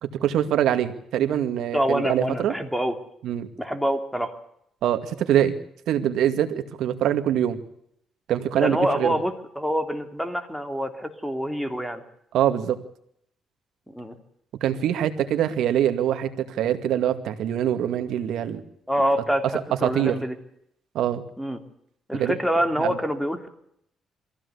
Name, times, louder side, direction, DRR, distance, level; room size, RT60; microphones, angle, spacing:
voice 1, 0.0-2.5 3.2-3.5 4.8-5.6 5.9-7.6 8.3-9.2 12.3-12.8 14.6-18.6 19.8-20.2 20.9-21.2 22.1-22.4 22.8-23.0, right 10 dB, 80° right, 8 dB, 2.2 m, -24 dB
voice 2, 1.7-2.9 3.6-4.3 8.6-12.0 13.9-14.1 18.9-20.3 21.4-21.6 22.1-23.5, equal, ahead, 6 dB, 3.3 m, -26 dB
23.0 x 15.5 x 8.4 m, 0.73 s
cardioid pair, 90°, 0 cm